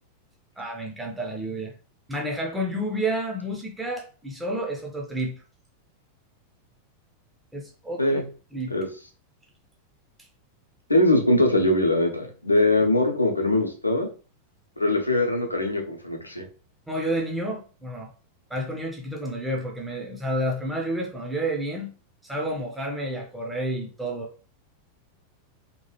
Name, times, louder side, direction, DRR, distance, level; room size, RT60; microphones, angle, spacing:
voice 1, 0.6-1.7 2.1-5.4 7.5-8.2 8.5-8.7 16.9-18.1 18.5-21.9 22.2-24.3, right 1 dB, 5° right, 0.5 m, -30 dB
voice 2, 10.9-14.1 14.8-16.4, left 1 dB, 85° left, 0.6 m, -22 dB
2.9 x 2.3 x 2.8 m
figure-of-eight pair, 90°, 0 cm